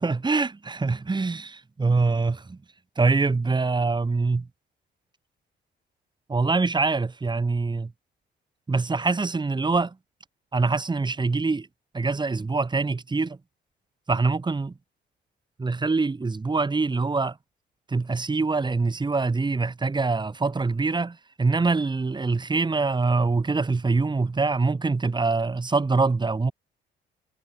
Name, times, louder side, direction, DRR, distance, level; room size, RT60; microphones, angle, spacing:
voice 1, 0.0-2.6 3.0-4.5 6.3-7.9 8.7-10.0 10.5-11.7 11.9-13.4 14.1-14.7 15.6-17.4 17.9-26.5, right 3 dB, 20° right, 2.4 m, -24 dB
cardioid pair, 90°, 20 cm